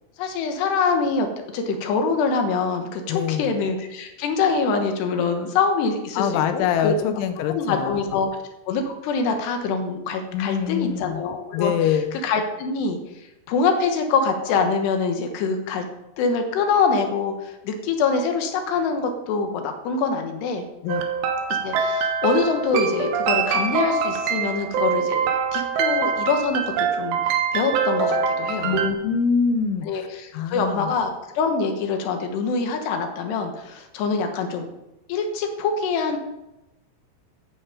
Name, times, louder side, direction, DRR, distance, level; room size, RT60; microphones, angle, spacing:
voice 1, 0.2-1.3 1.5-6.9 7.5-8.3 8.7-13.0 13.5-15.8 16.2-20.6 21.6-28.9 29.8-34.7 35.1-36.2, left 4 dB, 70° left, 5 dB, 3.3 m, -24 dB
voice 2, 3.1-3.6 6.2-8.3 10.3-11.2 11.5-12.2 20.8-21.0 28.6-30.1 30.3-30.9, left 7 dB, 90° left, 8 dB, 3.2 m, -24 dB
sound 1, 20.9-28.9, right 6 dB, 75° right, 3.2 m, -24 dB
14.5 x 8.8 x 5.0 m, 0.95 s
omnidirectional pair, 5.3 m